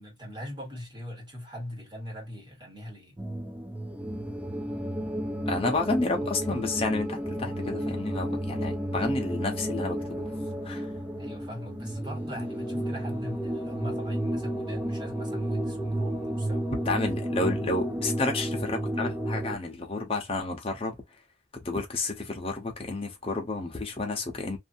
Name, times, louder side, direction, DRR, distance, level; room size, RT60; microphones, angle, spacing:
voice 1, 0.0-3.2 11.2-16.9, equal, 25° right, 1.5 m, -41 dB
sound 1, 3.2-19.6, right 1 dB, 10° right, 0.4 m, -32 dB
voice 2, 5.5-10.3 10.6-10.9 16.9-21.0 21.6-24.6, left 2 dB, 30° left, 0.9 m, -31 dB
2.7 x 2.6 x 2.6 m
head